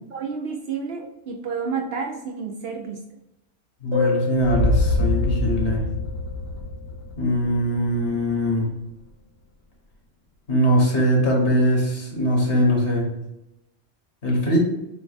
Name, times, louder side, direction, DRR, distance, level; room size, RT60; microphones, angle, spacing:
voice 1, 0.1-3.0, right 5 dB, 65° right, 1 dB, 0.7 m, -30 dB
voice 2, 3.8-5.8 7.2-8.7 10.5-13.1 14.2-14.6, equal, 60° left, -1 dB, 1.4 m, -21 dB
sound 1, 3.9-7.2, left 6 dB, 80° right, 1.6 m, -31 dB
sound 2, 4.4-8.4, left 1 dB, 40° left, 0.9 m, -25 dB
6.9 x 2.4 x 2.4 m, 0.90 s
omnidirectional pair, 1.3 m